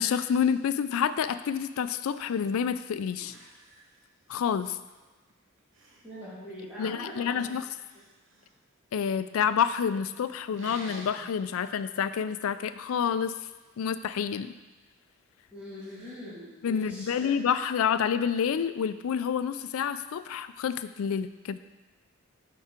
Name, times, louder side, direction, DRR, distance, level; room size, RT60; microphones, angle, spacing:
voice 1, 0.0-3.3 4.3-4.8 6.8-7.6 8.9-13.4 13.8-14.5 16.6-21.6, left 7 dB, 80° left, 13 dB, 0.3 m, -28 dB
sound 1, 3.2-4.5 4.9-5.3 5.6-6.1 7.4-8.6 10.5-11.3 11.8-12.0 12.3-13.8 15.8-16.2, right 1 dB, 65° right, 1.0 m, -50 dB
voice 2, 6.0-7.4 15.5-17.3, equal, 5° right, -11 dB, 2.6 m, -42 dB
7.4 x 4.6 x 4.4 m, 1.1 s
head